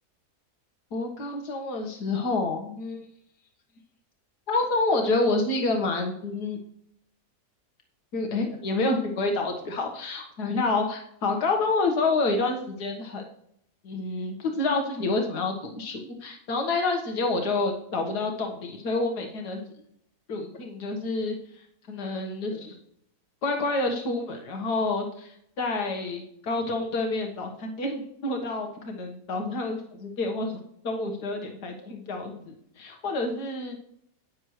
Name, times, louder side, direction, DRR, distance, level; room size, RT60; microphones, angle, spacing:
voice 1, 0.9-3.0 4.5-6.6 8.1-13.2 13.8-19.6 20.3-21.4 21.9-22.8 23.4-30.6 30.8-32.4 32.8-33.8, left 3 dB, 85° left, 3 dB, 2.1 m, -28 dB
11.5 x 9.6 x 3.2 m, 0.69 s
omnidirectional pair, 1.7 m